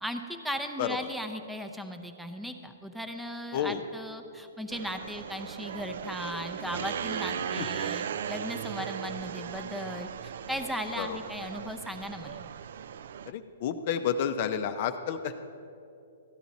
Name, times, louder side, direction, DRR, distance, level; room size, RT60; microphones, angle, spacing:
voice 1, 0.0-12.4, equal, ahead, 6 dB, 0.6 m, -37 dB
voice 2, 3.5-3.8 7.6-7.7 11.0-11.2 13.3-15.4, left 8 dB, 45° left, 8 dB, 0.5 m, -30 dB
sound 1, 4.7-13.3, right 8 dB, 65° right, 0.3 m, -37 dB
14.0 x 10.0 x 4.1 m, 2.7 s
hypercardioid pair, 150°, 0 cm